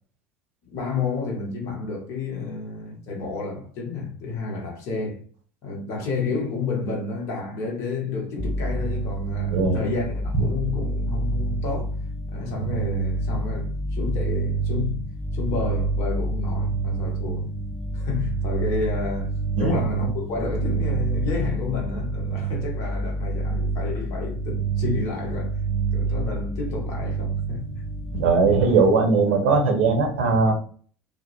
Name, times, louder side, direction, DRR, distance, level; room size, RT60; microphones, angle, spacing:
voice 1, 0.7-5.2 5.6-12.0 12.3-15.0 15.3-17.5 17.9-25.6 25.9-27.8, left 4 dB, 50° left, 1.0 m, -30 dB
sound 1, 8.4-28.2, right 3 dB, 10° left, 1.1 m, -27 dB
voice 2, 28.1-30.5, right 4 dB, 60° right, 0.6 m, -19 dB
2.1 x 2.0 x 3.0 m
figure-of-eight pair, 70°, 7 cm